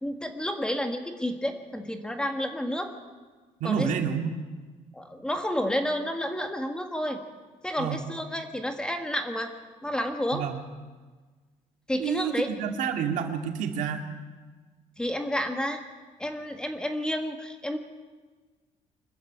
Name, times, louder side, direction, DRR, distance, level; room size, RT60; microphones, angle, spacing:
voice 1, 0.0-2.9 3.6-3.9 4.9-7.2 7.6-9.5 9.8-10.4 11.9-12.5 15.0-15.8 16.2-17.8, equal, 5° left, 5 dB, 1.7 m, -30 dB
voice 2, 3.6-4.4 7.8-8.0 10.3-10.6 12.0-14.1, right 7 dB, 80° right, 4 dB, 2.3 m, -29 dB
24.5 x 14.0 x 8.8 m, 1.4 s
cardioid pair, 155°, 13 cm